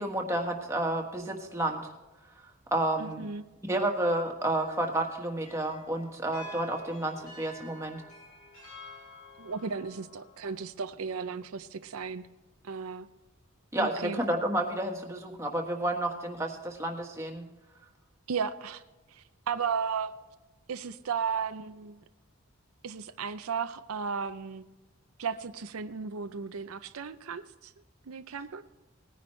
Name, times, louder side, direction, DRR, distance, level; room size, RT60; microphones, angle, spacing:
voice 1, 0.0-1.8 2.7-3.2 3.7-8.0 13.7-17.4, right 1 dB, 15° right, 1 dB, 1.5 m, -30 dB
voice 2, 3.0-3.4 9.4-12.2 12.6-13.1 13.8-14.2 18.3-18.8 19.1-20.1 20.7-22.0 22.8-24.6 25.2-27.7 28.1-28.6, right 6 dB, 80° right, 10 dB, 0.6 m, -35 dB
sound 1, 4.6-10.9, left 1 dB, 80° left, 4.7 m, -50 dB
19.0 x 10.0 x 3.2 m, 1.1 s
head